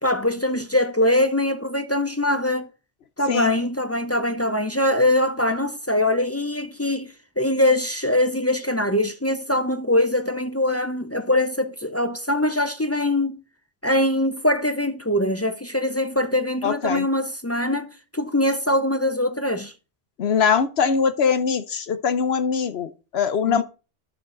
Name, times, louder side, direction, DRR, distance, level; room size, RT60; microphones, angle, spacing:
voice 1, 0.0-2.7 3.2-7.1 7.4-13.4 13.8-19.7 23.5-23.6, left 1 dB, 20° left, 0.4 m, -22 dB
voice 2, 16.6-17.1 20.2-23.6, left 6 dB, 60° left, 0.9 m, -22 dB
11.5 x 6.4 x 3.8 m
omnidirectional pair, 1.2 m